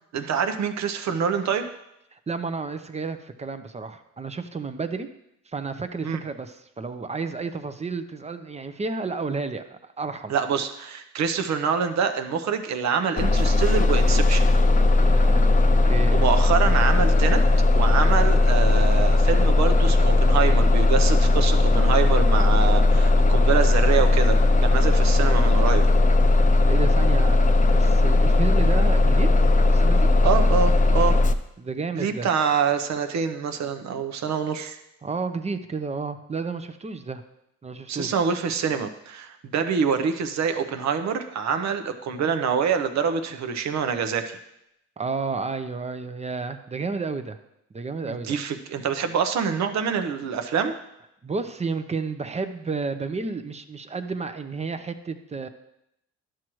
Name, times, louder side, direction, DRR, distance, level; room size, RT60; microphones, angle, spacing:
voice 1, 0.1-1.7 6.0-6.2 10.3-14.5 16.1-17.4 17.7-25.8 30.2-31.2 31.9-34.8 37.9-44.4 48.0-50.7, right 6 dB, 65° right, 8 dB, 0.8 m, -26 dB
voice 2, 2.1-5.1 5.5-10.3 15.0-16.2 26.7-27.4 27.7-29.3 29.7-30.1 31.6-32.3 35.0-37.2 37.6-38.1 45.0-47.4 47.7-48.4 51.2-55.5, right 4 dB, 20° right, 9 dB, 0.6 m, -31 dB
Bus, 13.2-31.3, left 2 dB, 25° left, 0.5 m, -18 dB
11.5 x 6.2 x 3.1 m, 0.83 s
cardioid pair, 90°, 30 cm